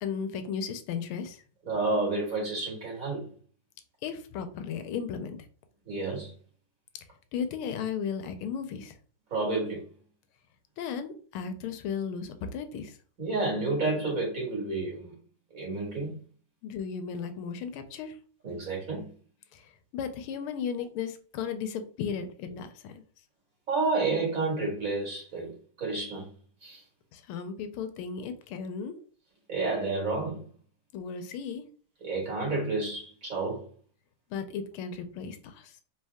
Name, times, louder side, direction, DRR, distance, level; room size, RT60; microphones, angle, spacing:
voice 1, 0.0-1.4 4.0-5.4 7.3-9.0 10.8-13.0 16.6-18.2 19.5-22.9 27.1-28.9 30.9-31.6 34.3-35.8, left 6 dB, 85° left, 1.5 m, -35 dB
voice 2, 1.6-3.2 5.9-6.3 9.3-9.9 13.2-15.1 15.5-16.2 18.4-19.1 23.7-26.3 26.6-26.8 29.5-30.4 32.0-33.7, right 3 dB, 40° right, 2.3 m, -30 dB
4.4 x 2.8 x 3.4 m
omnidirectional pair, 2.4 m